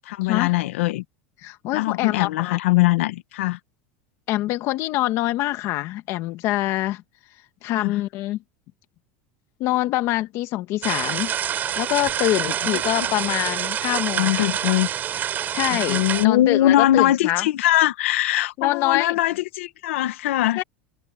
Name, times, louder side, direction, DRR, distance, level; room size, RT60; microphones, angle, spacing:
voice 1, 0.1-1.0 1.7-3.6 7.8-8.0 12.7-12.8 14.2-14.9 15.7-20.6, left 15 dB, 85° left, 1.6 m, -21 dB
voice 2, 1.4-2.6 4.3-7.0 7.6-8.4 9.6-11.3 11.8-14.5 15.5-17.5 18.6-19.1 20.5-20.6, left 16 dB, 45° left, 1.6 m, -25 dB
sound 1, 10.8-16.2, right 10 dB, 30° right, 4.2 m, -26 dB
supercardioid pair, 155°, 7 cm